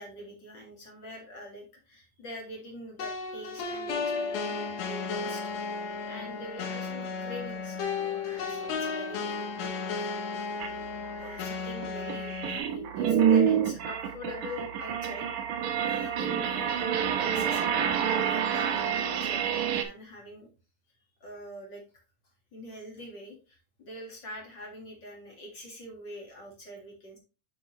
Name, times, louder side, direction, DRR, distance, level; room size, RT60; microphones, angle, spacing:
voice 1, 0.0-5.6 6.0-10.5 11.1-15.3 15.8-20.5 21.2-21.8 22.5-27.2, left 1 dB, 40° left, 0 dB, 1.7 m, -44 dB
sound 1, 3.0-12.6, left 5 dB, 70° left, 2.9 m, -34 dB
sound 2, 10.6-10.7 11.2-19.8, right 8 dB, 75° right, 1.8 m, -27 dB
8.7 x 5.2 x 3.1 m, 0.32 s
omnidirectional pair, 4.5 m